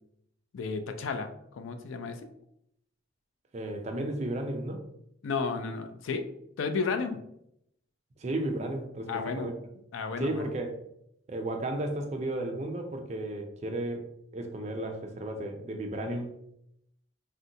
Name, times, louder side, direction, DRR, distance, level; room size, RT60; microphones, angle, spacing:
voice 1, 0.5-2.2 5.2-6.3 6.6-7.2 9.1-9.5 9.9-10.5, left 4 dB, 90° left, 8 dB, 0.4 m, -32 dB
voice 2, 3.5-4.8 8.2-9.1 9.4-9.5 10.2-10.7 11.3-14.1 14.3-16.3, right 1 dB, 35° right, 4 dB, 0.4 m, -33 dB
3.6 x 2.2 x 2.7 m, 0.76 s
head